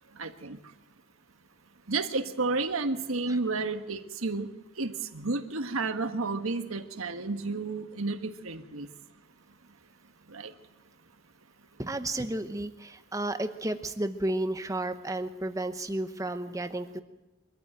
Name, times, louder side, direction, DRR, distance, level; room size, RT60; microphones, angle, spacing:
voice 1, 0.2-0.6 1.9-4.5 4.8-8.9 10.3-10.5, right 3 dB, 70° right, 8 dB, 1.5 m, -31 dB
voice 2, 11.8-17.0, right 1 dB, 15° right, 9 dB, 1.0 m, -32 dB
24.5 x 14.0 x 9.0 m, 1.0 s
head